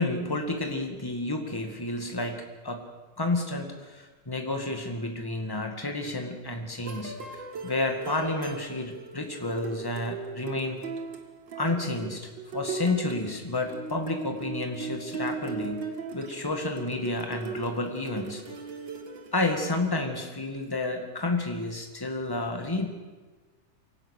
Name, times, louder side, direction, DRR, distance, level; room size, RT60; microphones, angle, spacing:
voice 1, 0.0-2.8 3.2-10.8 11.5-18.4 19.3-22.9, left 2 dB, 10° left, 4 dB, 1.3 m, -30 dB
sound 1, 6.8-20.0, right 4 dB, 40° right, 1.9 m, -38 dB
24.0 x 17.5 x 6.6 m, 1.3 s
omnidirectional pair, 3.8 m